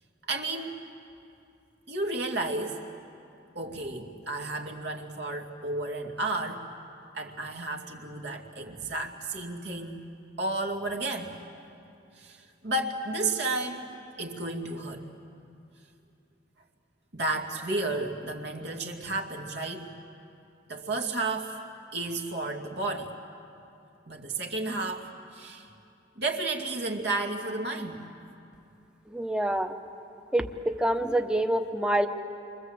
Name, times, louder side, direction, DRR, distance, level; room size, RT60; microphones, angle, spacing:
voice 1, 0.3-0.8 1.9-2.8 3.5-6.6 7.1-10.0 10.4-11.3 12.2-12.4 12.6-13.9 14.2-15.1 17.1-19.9 20.7-21.6 21.9-23.1 24.1-25.7 26.2-28.0, right 2 dB, 65° right, 2 dB, 2.5 m, -32 dB
voice 2, 29.1-29.7 30.3-32.1, right 1 dB, 5° right, 7 dB, 1.1 m, -26 dB
28.5 x 24.0 x 8.0 m, 2.6 s
head